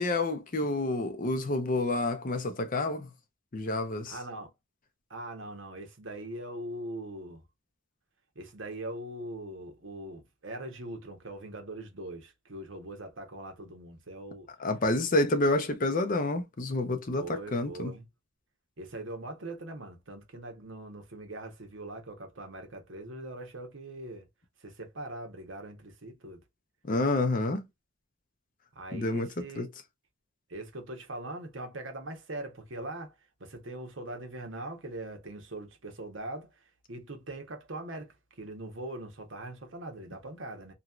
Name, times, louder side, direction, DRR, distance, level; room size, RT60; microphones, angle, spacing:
voice 1, 0.0-3.1 3.5-4.1 14.6-17.2 17.5-17.9 26.9-27.7 28.9-29.3 29.6-29.7, left 2 dB, 40° left, 0.6 m, -28 dB
voice 2, 4.1-4.5 5.1-7.4 8.3-14.5 17.2-18.0 18.8-24.3 24.6-26.4 28.7-29.7 30.5-33.1 33.4-36.6 36.9-40.7, right 1 dB, 70° right, 1.0 m, -41 dB
3.0 x 2.7 x 2.3 m
head